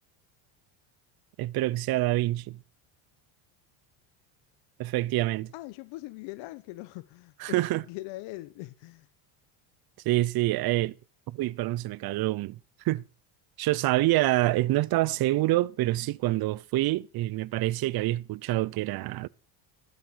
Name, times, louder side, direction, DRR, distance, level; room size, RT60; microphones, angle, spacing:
voice 1, 1.4-2.6 4.8-5.5 7.4-7.8 10.0-10.9 11.3-12.6 12.8-13.0 13.6-19.3, right 17 dB, 50° right, 0.7 m, -26 dB
voice 2, 5.5-9.1, left 19 dB, 65° left, 1.0 m, -41 dB
13.0 x 7.9 x 6.3 m
supercardioid pair, 110°, 49 cm